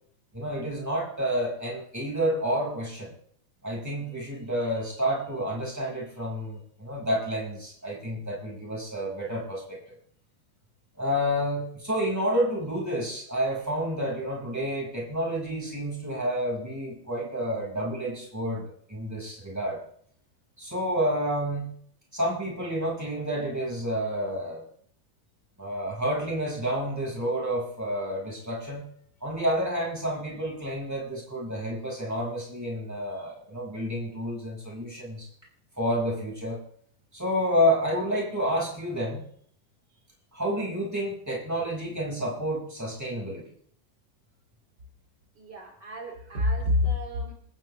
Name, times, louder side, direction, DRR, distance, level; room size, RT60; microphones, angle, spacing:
voice 1, 0.3-3.1 3.6-10.0 11.0-19.8 20.6-21.7 22.1-24.6 25.6-28.9 29.2-35.3 35.8-36.6 37.1-39.2 40.3-43.5, equal, 10° right, -3 dB, 5.6 m, -29 dB
voice 2, 45.4-47.3, left 2 dB, 55° right, 0 dB, 3.5 m, -28 dB
28.0 x 14.5 x 3.4 m, 0.62 s
omnidirectional pair, 2.2 m